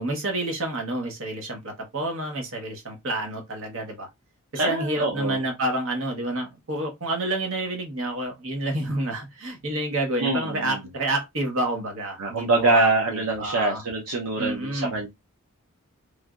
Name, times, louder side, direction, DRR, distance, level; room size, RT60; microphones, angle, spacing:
voice 1, 0.0-4.1 4.5-13.8 14.4-14.9, right 1 dB, 60° right, 1.1 m, -29 dB
voice 2, 4.5-5.4 10.2-10.8 12.2-15.1, right 2 dB, 80° right, 0.7 m, -24 dB
3.3 x 2.6 x 2.4 m
head